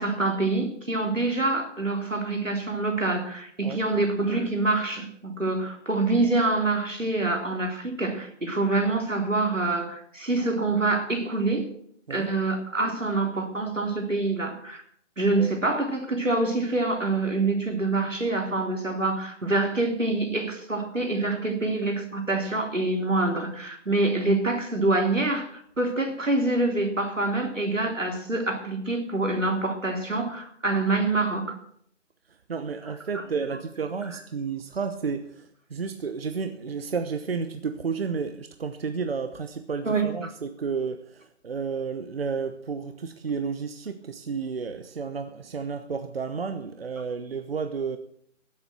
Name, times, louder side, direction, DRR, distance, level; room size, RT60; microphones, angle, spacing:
voice 1, 0.0-11.7 12.1-14.8 15.2-31.6 33.1-33.2 39.8-40.1, right 2 dB, 85° right, 3.8 m, -26 dB
voice 2, 32.3-48.0, right 5 dB, 50° right, 1.1 m, -32 dB
15.5 x 8.0 x 7.7 m
figure-of-eight pair, 145°, 37 cm